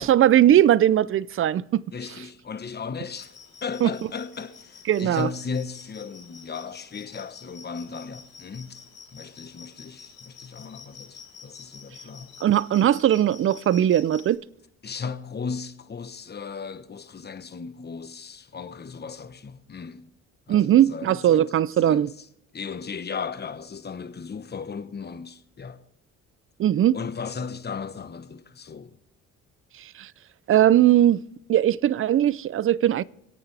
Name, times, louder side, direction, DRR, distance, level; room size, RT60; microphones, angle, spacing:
voice 1, 0.0-1.8 3.8-3.9 4.9-5.3 12.4-14.4 20.5-22.1 26.6-27.0 29.8-30.1 30.5-31.2 31.5-33.0, right 11 dB, 45° right, 0.4 m, -19 dB
voice 2, 1.9-3.3 3.6-8.8 9.1-12.3 14.8-20.1 20.5-21.5 21.8-22.0 22.5-25.8 26.9-29.0, left 5 dB, 35° left, 1.0 m, -36 dB
sound 1, 3.1-14.4, left 6 dB, 55° left, 3.5 m, -48 dB
25.0 x 8.9 x 3.3 m
cardioid pair, 90°, 30 cm